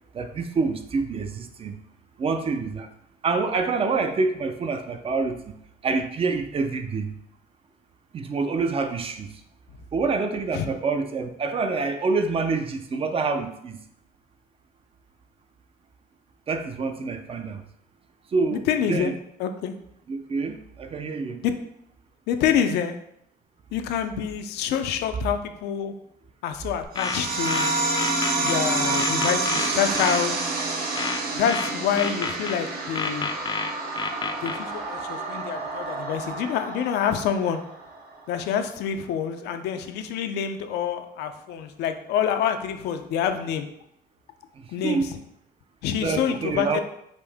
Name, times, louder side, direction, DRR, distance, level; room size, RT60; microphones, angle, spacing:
voice 1, 0.1-1.8 2.2-2.9 3.2-5.5 5.8-7.2 8.1-9.3 9.9-13.8 16.5-17.6 18.3-18.6 18.9-19.1 20.1-21.4 44.6-45.1 46.0-46.8, right 4 dB, 35° right, 7 dB, 0.5 m, -26 dB
voice 2, 18.5-19.1 19.4-19.7 21.4-21.5 22.3-23.0 23.7-25.9 26.4-27.8 28.4-30.3 31.3-33.3 34.4-37.6 38.3-43.7 44.7-45.1 45.8-46.8, left 8 dB, 80° left, 7 dB, 0.5 m, -27 dB
sound 1, 26.8-28.6 29.0-30.2 31.0-32.6 33.0-34.6, left 5 dB, 25° left, 0.4 m, -30 dB
sound 2, 27.0-38.0, right 3 dB, 60° right, 0.9 m, -28 dB
5.2 x 2.6 x 3.5 m, 0.75 s
cardioid pair, 110°, 17 cm